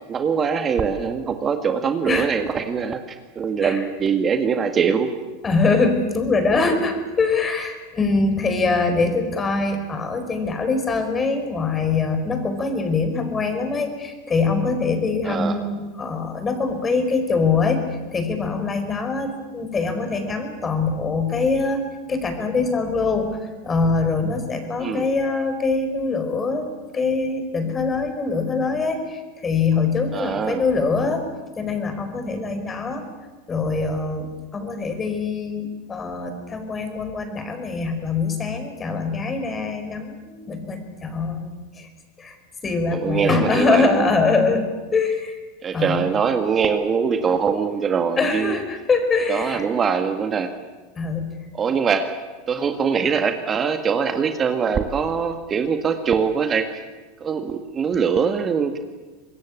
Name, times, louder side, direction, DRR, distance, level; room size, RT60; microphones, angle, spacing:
voice 1, 0.1-3.0 3.4-5.1 15.2-15.6 24.8-25.1 30.1-30.6 42.9-44.1 45.6-48.6 49.3-50.5 51.5-52.1 52.5-56.7 57.2-58.8, right 6 dB, 30° right, 7 dB, 2.0 m, -22 dB
voice 2, 5.4-17.9 18.1-26.7 26.9-31.3 31.6-33.1 33.5-41.5 41.8-41.9 42.2-42.4 42.6-45.4 45.7-46.1 48.2-49.6 51.0-51.3, left 4 dB, 25° left, 8 dB, 4.9 m, -23 dB
24.5 x 21.5 x 8.6 m, 1.3 s
hypercardioid pair, 85°, 0 cm